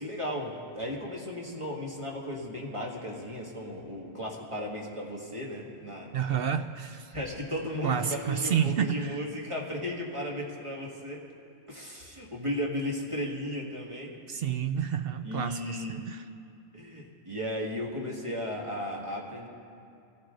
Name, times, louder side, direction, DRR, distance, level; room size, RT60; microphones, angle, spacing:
voice 1, 0.0-6.4 7.1-11.2 11.7-14.1 15.2-16.2 16.7-19.5, left 1 dB, 25° right, -2 dB, 2.0 m, -35 dB
voice 2, 6.1-7.1 7.8-9.2 14.3-16.2, right 8 dB, 65° right, 9 dB, 0.6 m, -30 dB
23.0 x 14.0 x 3.9 m, 2.6 s
omnidirectional pair, 1.3 m